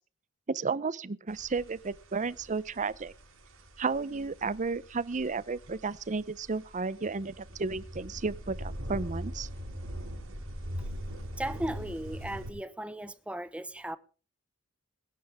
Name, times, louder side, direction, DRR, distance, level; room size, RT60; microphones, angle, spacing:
voice 1, 0.5-3.1 3.8-9.5, right 4 dB, 35° right, 0.6 m, -33 dB
sound 1, 1.3-12.5, equal, 75° right, 5.1 m, -42 dB
voice 2, 11.4-14.0, right 1 dB, 5° right, 0.9 m, -36 dB
22.0 x 10.0 x 3.5 m
head